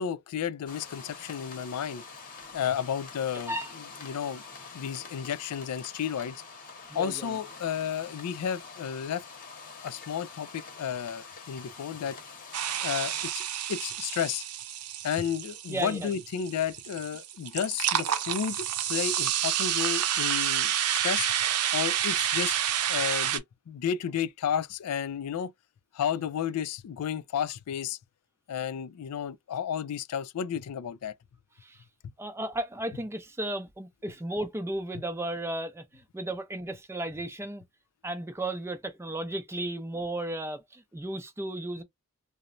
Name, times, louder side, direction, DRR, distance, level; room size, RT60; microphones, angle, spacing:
voice 1, 0.0-2.0 2.5-3.5 4.0-4.4 4.7-6.4 6.9-9.3 9.8-12.2 12.8-13.4 13.7-14.4 15.0-21.3 21.7-22.6 22.9-25.5 25.9-28.0 28.5-31.2, left 8 dB, 90° left, 0.4 m, -32 dB
sound 1, 0.7-13.3, left 4 dB, 40° left, 0.9 m, -46 dB
voice 2, 6.9-7.4 15.7-16.1 31.6-31.8 32.2-37.6 38.0-41.8, right 1 dB, 10° right, 0.5 m, -34 dB
sound 2, 12.5-23.4, right 10 dB, 90° right, 0.5 m, -29 dB
2.9 x 2.0 x 2.5 m
head